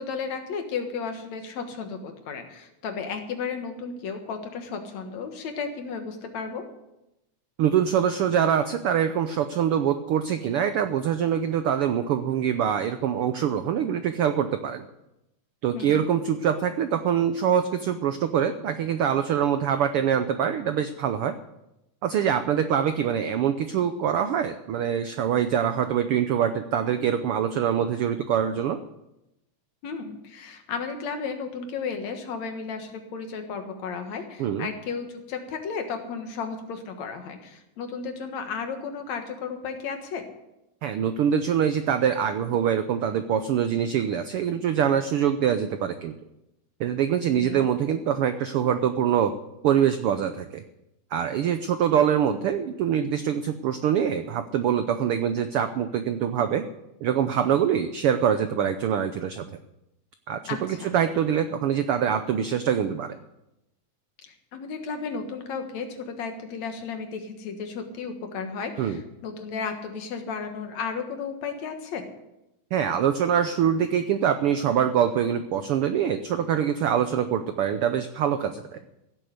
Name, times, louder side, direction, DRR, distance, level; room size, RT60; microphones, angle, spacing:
voice 1, 0.0-6.7 15.7-16.1 29.8-40.3 47.3-47.7 60.5-60.9 64.3-72.0, left 5 dB, 65° left, 5 dB, 2.7 m, -34 dB
voice 2, 7.6-14.8 15.6-21.3 22.0-28.8 34.4-34.7 40.8-46.1 46.8-49.3 49.6-50.6 51.1-56.7 57.0-59.5 60.3-63.2 68.8-69.0 72.7-78.8, right 8 dB, 85° right, 9 dB, 1.2 m, -24 dB
16.0 x 7.8 x 8.2 m, 0.89 s
omnidirectional pair, 3.4 m